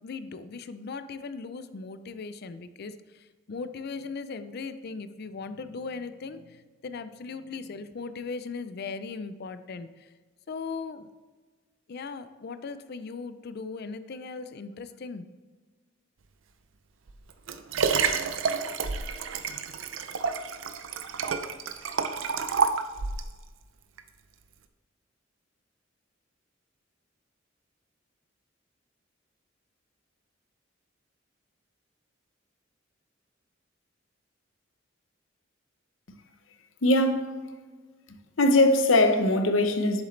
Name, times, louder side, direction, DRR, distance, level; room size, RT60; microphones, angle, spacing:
voice 1, 0.0-10.1 10.5-11.1 11.9-15.2, left 4 dB, 55° left, 0.5 m, -38 dB
Liquid, 17.1-23.3 24.0-24.1, right 5 dB, 85° right, 0.5 m, -29 dB
voice 2, 36.8-37.4 38.4-40.0, left 1 dB, 80° left, 0.8 m, -21 dB
7.9 x 7.1 x 3.2 m
head